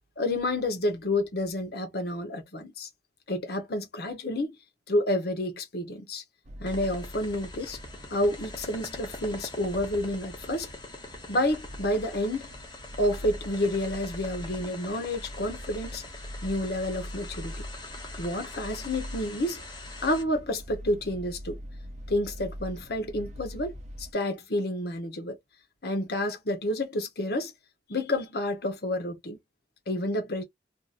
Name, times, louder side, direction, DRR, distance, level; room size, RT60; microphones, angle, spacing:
voice 1, 0.2-2.9 3.3-4.5 4.9-6.2 6.6-7.8 8.1-10.7 11.3-12.5 13.0-16.0 16.4-17.5 18.2-19.6 20.0-21.6 22.1-25.4 25.8-27.5 27.9-29.4 29.9-30.4, left 1 dB, 60° left, 1.0 m, -29 dB
sound 1, 6.4-24.1, equal, 40° right, 0.6 m, -43 dB
sound 2, 6.7-20.2, left 3 dB, 25° left, 0.8 m, -44 dB
2.8 x 2.6 x 2.4 m
head